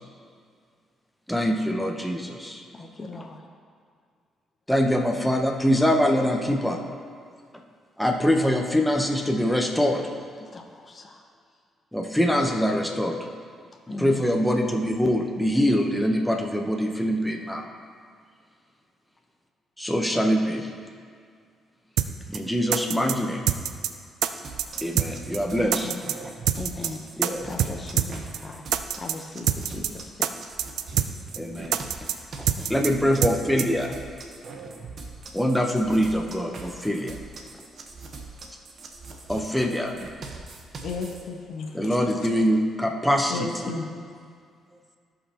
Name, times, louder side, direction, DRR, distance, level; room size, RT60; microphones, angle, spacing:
voice 1, 1.3-2.6 4.7-6.8 8.0-10.0 11.9-13.2 14.0-17.7 19.8-20.7 22.3-23.5 24.8-25.9 27.2-27.4 31.4-31.8 32.7-33.9 35.3-37.2 39.3-39.9 41.7-43.4, equal, ahead, 1 dB, 1.0 m, -24 dB
voice 2, 2.7-3.5 10.4-11.3 13.9-14.3 22.3-22.4 25.5-26.1 26.5-30.3 32.4-32.8 34.4-34.5, left 2 dB, 30° left, 2 dB, 0.9 m, -39 dB
sound 1, 22.0-22.1 22.3-22.4 22.7-23.1 23.5-23.9 24.2-24.3 24.6-25.1 25.3-25.4 25.7-26.1 26.5-26.9 27.2-27.3 27.6-27.7 28.0-28.1 28.3-28.4 28.7-29.1 29.5-29.9 30.2-30.3 30.6-31.1 31.3-31.4 31.7-32.1 32.5-32.9 33.2-33.3 33.6-33.7, right 11 dB, 80° right, 0.4 m, -24 dB
sound 2, 24.4-41.2, right 3 dB, 55° right, 1.1 m, -42 dB
voice 3, 40.8-42.3 43.3-43.9, left 4 dB, 70° left, 1 dB, 1.2 m, -33 dB
15.5 x 5.5 x 3.0 m, 2.1 s
cardioid pair, 90°, 0 cm